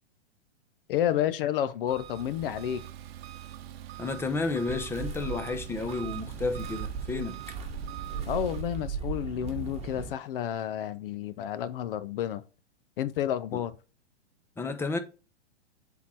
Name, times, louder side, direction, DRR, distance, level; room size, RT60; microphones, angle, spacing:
voice 1, 0.9-2.8 8.3-12.4 13.0-13.7, left 11 dB, 50° left, 0.6 m, -30 dB
Engine, 1.9-8.6, right 13 dB, 60° right, 0.8 m, -44 dB
voice 2, 4.0-7.4 13.5-13.6 14.6-15.0, left 3 dB, 5° left, 0.6 m, -31 dB
sound 1, 4.7-10.1, right 5 dB, 20° right, 1.6 m, -37 dB
7.2 x 3.8 x 4.4 m
hypercardioid pair, 120°, 35 cm